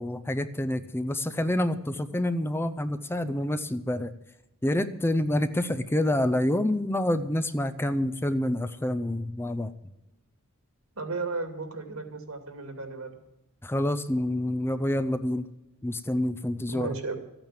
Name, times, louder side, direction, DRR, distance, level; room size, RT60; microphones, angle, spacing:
voice 1, 0.0-4.1 4.6-9.7 13.6-15.4 15.8-16.9, left 1 dB, 10° left, 10 dB, 0.6 m, -27 dB
voice 2, 11.0-13.2 16.7-17.2, right 3 dB, 75° right, 6 dB, 2.5 m, -34 dB
14.0 x 8.9 x 7.5 m, 0.93 s
head